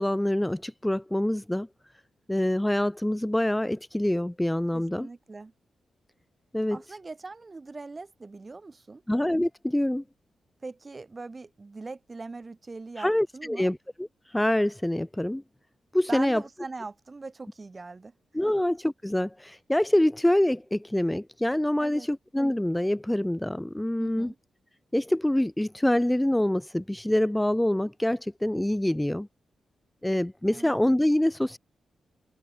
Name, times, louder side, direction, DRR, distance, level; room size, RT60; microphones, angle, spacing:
voice 1, 0.0-1.7 2.3-5.1 6.5-6.8 9.1-10.0 13.0-15.4 15.9-16.4 18.3-24.3 24.9-29.3 30.0-31.6, left 1 dB, 10° left, 0.6 m, -25 dB
voice 2, 4.7-5.5 6.7-9.0 10.6-13.7 16.1-18.1 18.4-18.5 21.8-22.1 24.0-24.4 30.4-30.7, right 3 dB, 40° right, 7.3 m, -41 dB
supercardioid pair, 40°, 0 cm